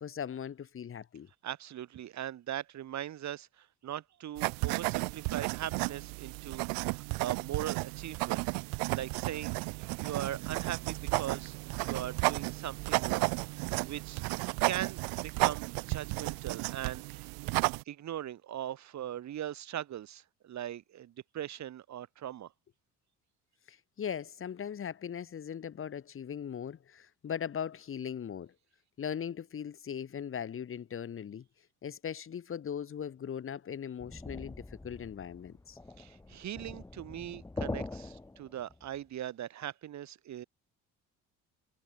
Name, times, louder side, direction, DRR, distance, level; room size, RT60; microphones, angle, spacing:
voice 1, 0.0-1.3 23.7-28.5 29.0-31.4 31.8-35.8, left 8 dB, 40° left, 1.7 m, -39 dB
voice 2, 1.4-8.5 8.9-11.6 11.8-13.3 13.6-14.2 14.6-17.3 17.9-22.5 36.0-40.4, right 11 dB, 55° right, 2.8 m, -40 dB
sound 1, 4.4-17.8, right 35 dB, 90° right, 1.3 m, -33 dB
sound 2, 34.0-39.0, left 2 dB, 10° left, 0.9 m, -43 dB
supercardioid pair, 90°, 33 cm